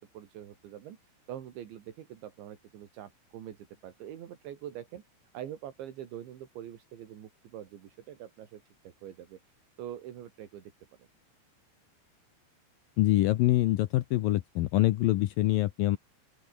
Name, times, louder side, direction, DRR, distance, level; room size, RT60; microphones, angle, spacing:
voice 1, 0.0-5.0 5.3-9.4 9.8-10.7 11.0-11.1, right 11 dB, 75° right, 4.7 m, -44 dB
voice 2, 13.0-16.0, left 16 dB, 90° left, 2.0 m, -25 dB
open air
omnidirectional pair, 5.3 m